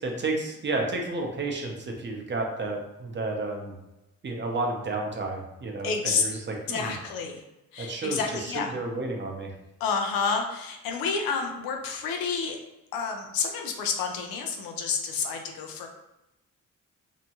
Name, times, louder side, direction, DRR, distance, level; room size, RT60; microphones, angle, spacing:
voice 1, 0.0-3.7 4.2-6.9 7.8-9.5, right 2 dB, 35° right, 1 dB, 0.7 m, -31 dB
voice 2, 5.8-6.2 6.7-7.4 7.7-8.7 9.8-12.6 12.9-15.9, left 5 dB, 85° left, 3 dB, 0.5 m, -29 dB
2.8 x 2.2 x 2.8 m, 0.93 s
cardioid pair, 75°, 34 cm